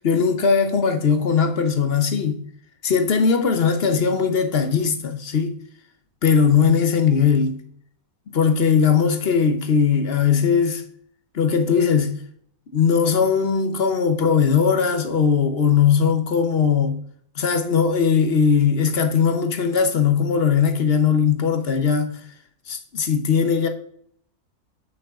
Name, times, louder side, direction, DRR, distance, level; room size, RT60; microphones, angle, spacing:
voice 1, 0.0-2.4 2.8-5.6 6.2-7.6 8.3-10.8 11.3-12.2 12.7-17.0 17.4-22.2 22.7-23.7, left 6 dB, 50° left, 1.0 m, -19 dB
8.4 x 6.3 x 3.7 m
omnidirectional pair, 1.5 m